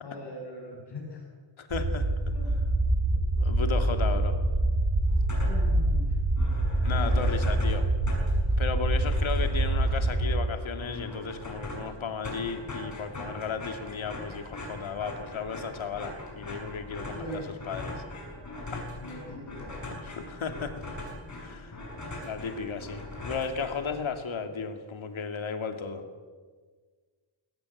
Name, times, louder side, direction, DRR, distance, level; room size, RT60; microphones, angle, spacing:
voice 1, 0.0-1.2 2.3-2.6 3.0-3.2 5.4-6.2 6.9-7.4 17.1-17.5 19.0-19.7, left 1 dB, 55° left, -2 dB, 7.1 m, -41 dB
voice 2, 1.6-2.1 3.4-4.3 6.8-7.9 8.6-17.2 17.7-18.0 18.7-18.8 20.1-20.7 21.4-21.9 22.2-26.0, left 5 dB, 75° left, 6 dB, 2.4 m, -34 dB
sound 1, 1.7-10.5, right 1 dB, 45° right, 5.2 m, -25 dB
sound 2, 5.1-5.8 6.1-6.2 6.4-24.2, left 1 dB, 35° left, 6.3 m, -41 dB
21.5 x 17.5 x 8.4 m, 1.5 s
wide cardioid pair, 170°, 48 cm